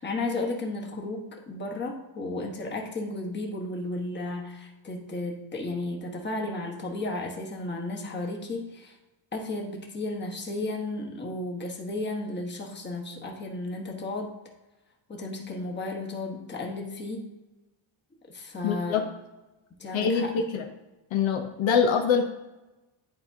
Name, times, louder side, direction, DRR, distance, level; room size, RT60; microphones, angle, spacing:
voice 1, 0.0-8.9 9.3-14.3 15.1-17.3 18.3-19.0 19.8-20.3, left 2 dB, 20° left, 0 dB, 1.2 m, -33 dB
voice 2, 18.6-19.0 19.9-20.7 21.1-22.2, left 6 dB, 65° left, 4 dB, 0.8 m, -24 dB
10.5 x 4.4 x 2.7 m, 1.1 s
cardioid pair, 130°, 49 cm